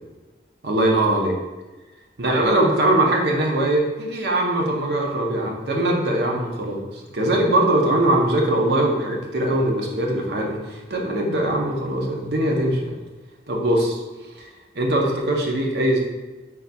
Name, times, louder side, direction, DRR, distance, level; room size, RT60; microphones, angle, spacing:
voice 1, 0.6-1.4 2.2-12.9 13.5-13.9 14.4-14.5 14.7-16.0, right 1 dB, 70° right, 0 dB, 0.7 m, -21 dB
4.1 x 3.8 x 2.2 m, 1.2 s
head